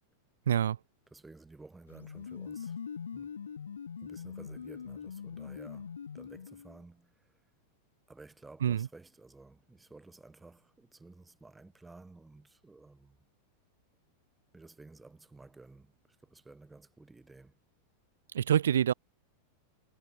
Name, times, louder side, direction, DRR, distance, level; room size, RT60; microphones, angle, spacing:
voice 1, 0.5-0.8 8.6-8.9 18.3-18.9, right 9 dB, 65° right, 0.3 m, -26 dB
voice 2, 1.1-2.8 3.1-3.3 4.0-7.3 8.1-13.3 14.5-17.6, right 3 dB, 10° right, 1.0 m, -54 dB
sound 1, 1.9-6.8, left 7 dB, 70° left, 0.6 m, -42 dB
figure-of-eight pair, 90°, 0 cm